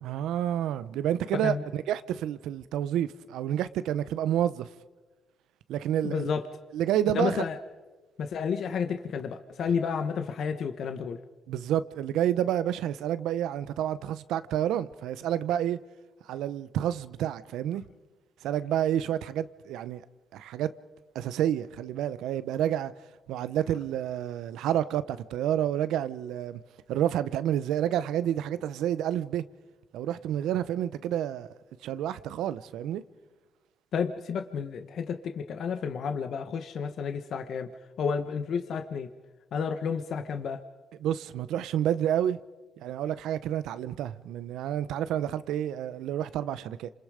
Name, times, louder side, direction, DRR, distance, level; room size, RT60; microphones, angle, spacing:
voice 1, 0.0-4.7 5.7-6.3 6.7-7.5 11.5-15.8 16.3-17.8 18.4-20.0 20.3-20.7 21.1-22.9 23.3-26.6 26.9-29.4 29.9-31.5 31.8-33.0 41.0-42.4 42.8-46.9, right 11 dB, 85° right, 0.8 m, -29 dB
voice 2, 1.3-1.6 6.0-6.4 7.1-7.6 8.2-11.2 33.9-37.7 38.0-39.1 39.5-40.6, left 6 dB, 65° left, 1.4 m, -31 dB
28.0 x 27.0 x 5.1 m
cardioid pair, 90°, 0 cm